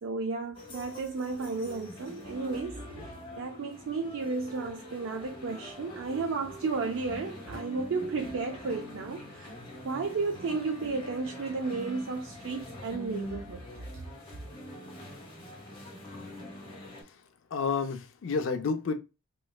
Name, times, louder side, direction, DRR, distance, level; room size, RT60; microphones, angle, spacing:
voice 1, 0.0-9.6 9.8-13.7, right 4 dB, 60° right, 0.4 m, -33 dB
sound 1, 0.6-17.0, left 1 dB, 25° left, 1.2 m, -44 dB
voice 2, 17.5-18.9, left 5 dB, 60° left, 0.4 m, -30 dB
3.1 x 3.0 x 2.3 m
head